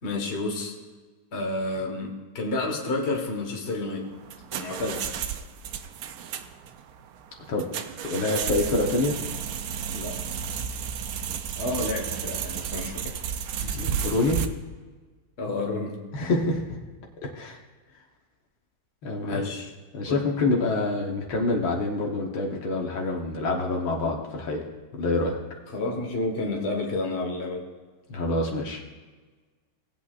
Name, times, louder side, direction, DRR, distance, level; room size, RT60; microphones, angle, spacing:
voice 1, 0.0-0.7 1.3-4.1 4.5-5.1 9.9-10.2 11.6-13.2 13.6-13.9 15.4-16.0 19.2-19.7 20.1-20.2 25.7-27.7, left 2 dB, 35° left, 0 dB, 1.6 m, -30 dB
sound 1, 4.0-14.5, right 8 dB, 90° right, 0.8 m, -32 dB
voice 2, 8.0-9.2 13.7-14.4 16.1-16.8 17.4-17.6 19.0-19.5 19.9-24.6 24.9-25.4 28.1-28.8, left 2 dB, 70° left, 0 dB, 2.0 m, -26 dB
19.0 x 8.3 x 2.5 m, 1.3 s
omnidirectional pair, 2.3 m